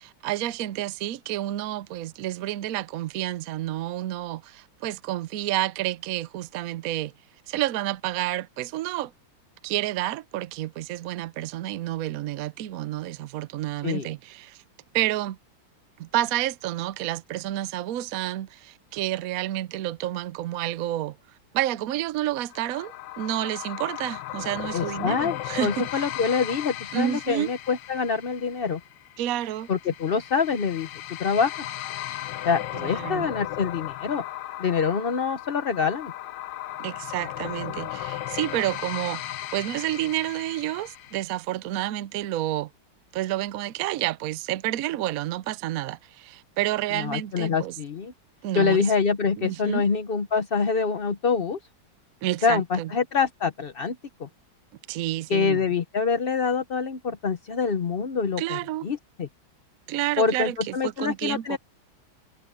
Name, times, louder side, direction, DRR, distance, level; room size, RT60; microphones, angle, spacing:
voice 1, 0.0-7.1 7.5-9.1 9.6-14.6 14.9-15.4 16.0-21.2 21.5-26.1 26.9-27.5 29.2-29.7 32.7-33.3 36.8-42.7 43.1-47.8 48.4-48.9 49.4-49.8 52.2-52.9 54.9-55.7 58.4-58.9 59.9-61.6, right 14 dB, 80° right, 0.7 m, -29 dB
sound 1, 22.5-41.2, left 13 dB, 70° left, 1.3 m, -36 dB
voice 2, 24.7-28.8 29.7-30.9 31.2-31.7 32.4-34.2 34.6-36.1 46.9-48.1 48.5-51.6 52.4-54.3 55.3-59.3 60.2-61.6, left 5 dB, 50° left, 0.6 m, -25 dB
omnidirectional pair, 2.2 m